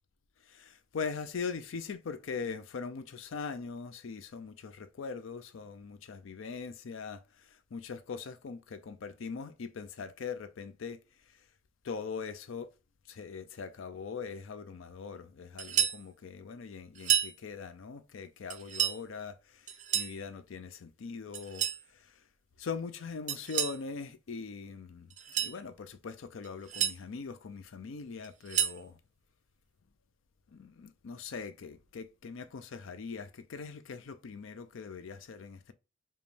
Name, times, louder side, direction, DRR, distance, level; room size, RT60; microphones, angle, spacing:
voice 1, 0.5-11.0 11.8-12.7 13.1-21.7 21.9-22.2 22.6-25.1 25.4-29.0 30.5-35.7, left 5 dB, 80° left, 0.5 m, -41 dB
sound 1, 15.6-16.0 17.0-17.3 18.5-19.0 19.7-20.2 21.3-21.8 23.3-23.8 25.1-25.6 26.4-27.0 28.2-28.8, right 9 dB, 40° right, 0.4 m, -30 dB
5.1 x 2.3 x 3.2 m
head